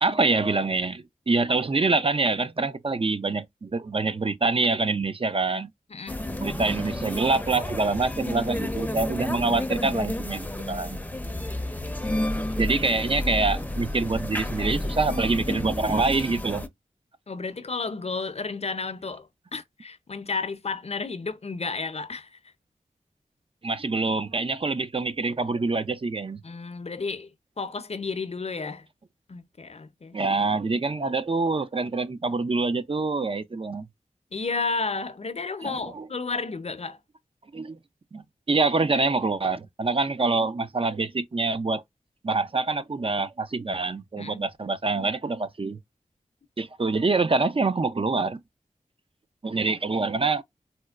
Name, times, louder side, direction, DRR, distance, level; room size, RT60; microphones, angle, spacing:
voice 1, 0.0-5.7 6.4-11.0 12.4-16.7 23.6-26.4 30.1-33.9 35.6-36.0 37.5-37.8 38.1-41.8 42.2-45.8 46.6-48.4 49.4-50.4, right 3 dB, 40° right, 0.6 m, -25 dB
voice 2, 5.9-6.3 17.3-22.4 26.4-27.3 27.6-28.9 29.3-30.2 34.3-37.0 44.2-44.5 49.5-49.6, left 4 dB, 50° left, 0.6 m, -32 dB
sound 1, 6.1-16.7, left 1 dB, 10° left, 0.6 m, -31 dB
4.2 x 2.1 x 2.4 m
cardioid pair, 45°, 14 cm